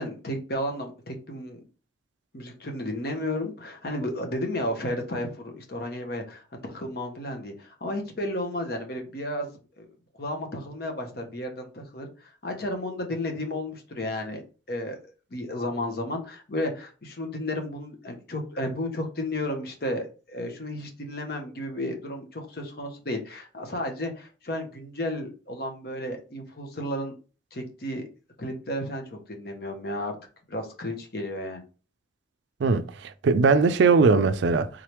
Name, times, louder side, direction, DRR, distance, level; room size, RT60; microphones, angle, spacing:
voice 1, 0.0-1.6 2.3-9.5 9.8-9.9 10.2-14.4 14.7-15.0 15.3-27.1 27.5-28.0 28.4-30.2 30.5-31.6, left 1 dB, 50° left, 0.9 m, -33 dB
voice 2, 32.6-34.7, right 4 dB, 70° right, 0.4 m, -20 dB
3.7 x 3.3 x 3.0 m
head